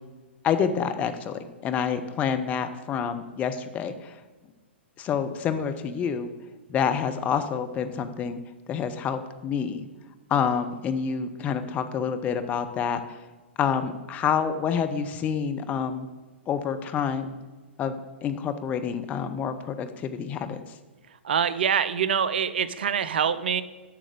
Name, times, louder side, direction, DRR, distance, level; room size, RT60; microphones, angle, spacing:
voice 1, 0.4-4.2 5.0-6.3 6.7-8.4 8.7-9.8 10.3-13.2 13.6-16.1 16.5-17.3 17.8-17.9 18.2-20.6, left 7 dB, 20° left, 8 dB, 0.7 m, -28 dB
voice 2, 21.2-23.6, right 7 dB, 55° right, 15 dB, 0.5 m, -25 dB
7.6 x 6.3 x 6.9 m, 1.3 s
figure-of-eight pair, 110°, 6 cm